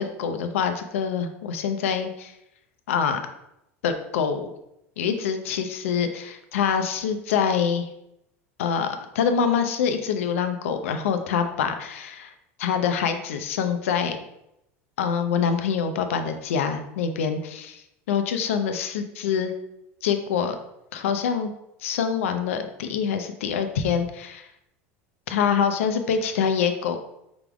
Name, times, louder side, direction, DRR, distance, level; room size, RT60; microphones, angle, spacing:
voice 1, 0.0-2.3 2.9-3.2 3.8-4.5 5.0-7.9 8.6-12.3 12.6-14.2 15.0-19.5 20.0-20.6 20.9-21.5 21.8-24.5 25.3-27.0, left 7 dB, 80° left, 7 dB, 0.5 m, -25 dB
4.9 x 3.5 x 2.3 m, 0.82 s
hypercardioid pair, 90°, 7 cm